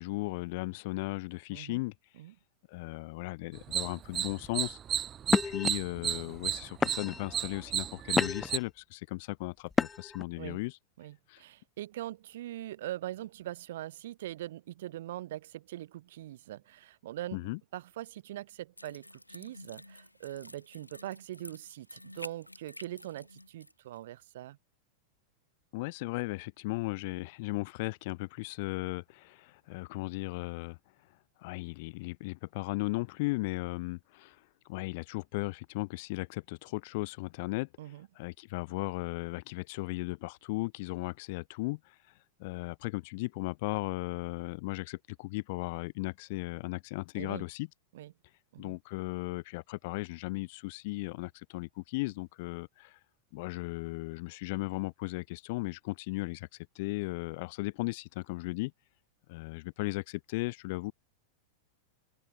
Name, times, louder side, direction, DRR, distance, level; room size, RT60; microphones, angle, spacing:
voice 1, 0.0-1.9 2.7-4.8 5.3-10.8 11.3-11.4 17.3-17.6 25.7-30.8 31.4-34.4 34.7-37.7 38.2-42.0 42.4-47.7 48.6-53.0 53.3-56.5 56.8-58.7 59.3-60.9, left 24 dB, 50° left, 2.0 m, -36 dB
voice 2, 1.5-1.8 2.2-2.3 10.4-10.6 11.0-24.6 37.8-38.1 47.2-47.5 47.9-48.1 48.5-48.8, right 14 dB, 55° right, 2.3 m, -42 dB
sound 1, 3.6-8.6, right 9 dB, 25° right, 0.7 m, -33 dB
sound 2, 4.4-4.7 5.3-5.7 6.4-6.5 6.8-7.3 7.8-8.6 9.7-10.2, left 4 dB, 15° left, 0.5 m, -29 dB
sound 3, 18.8-23.7 24.0-24.1, left 1 dB, 85° left, 5.1 m, -50 dB
figure-of-eight pair, 90°, 0 cm